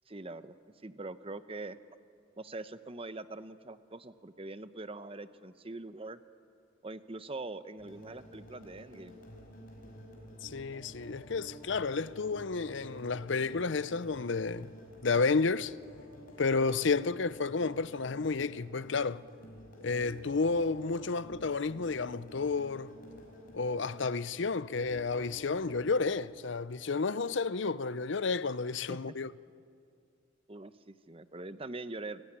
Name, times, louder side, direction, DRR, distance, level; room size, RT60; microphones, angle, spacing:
voice 1, 0.1-0.5 0.8-1.8 2.4-6.2 6.8-9.2 28.9-29.1 30.5-32.2, right 2 dB, 25° right, 0.9 m, -43 dB
sound 1, 7.8-26.2, equal, 45° left, 5.6 m, -51 dB
voice 2, 10.4-14.7 15.0-15.7 16.4-19.2 19.8-23.0 23.5-29.3, left 4 dB, 60° left, 0.6 m, -31 dB
29.5 x 19.5 x 9.9 m
head